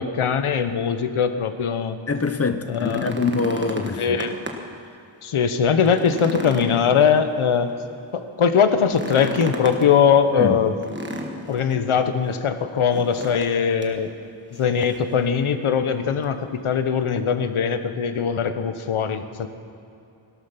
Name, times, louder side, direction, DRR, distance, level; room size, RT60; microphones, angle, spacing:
voice 1, 0.0-2.0 2.7-3.2 4.0-4.4 5.2-7.7 8.1-10.8 11.5-14.1 14.5-19.5, left 7 dB, 80° left, 9 dB, 1.1 m, -21 dB
voice 2, 2.1-4.2 10.4-10.6, left 4 dB, 30° left, 10 dB, 0.7 m, -24 dB
sound 1, 2.5-4.8 5.2-5.3 5.7-7.6 8.8-9.9 10.8-11.7 12.9-13.5 13.8-14.0 14.5-15.1 16.2-16.3, equal, 20° right, 1.4 m, -34 dB
17.0 x 12.0 x 5.9 m, 2.7 s
wide cardioid pair, 145°, 49 cm